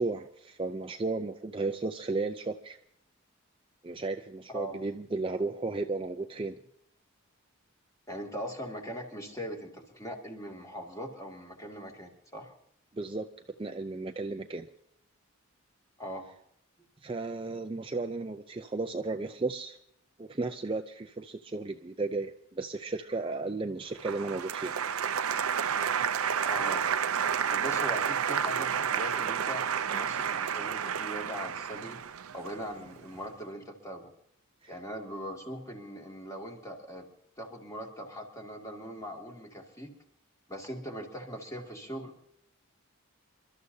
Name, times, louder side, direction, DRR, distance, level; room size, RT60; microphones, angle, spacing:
voice 1, 0.0-2.8 3.8-6.6 12.9-13.3 13.6-14.7 17.0-19.8 20.2-24.7 34.6-34.7, right 3 dB, 25° right, 6 dB, 0.5 m, -34 dB
voice 2, 4.5-4.8 8.1-12.5 16.0-16.3 26.4-26.9 27.5-32.0 32.3-34.1 34.7-37.1 37.4-39.9 40.5-42.1, equal, 15° left, 1 dB, 2.3 m, -40 dB
Applause, 24.0-33.1, right 7 dB, 85° right, 0.6 m, -30 dB
28.0 x 12.5 x 2.8 m, 0.73 s
head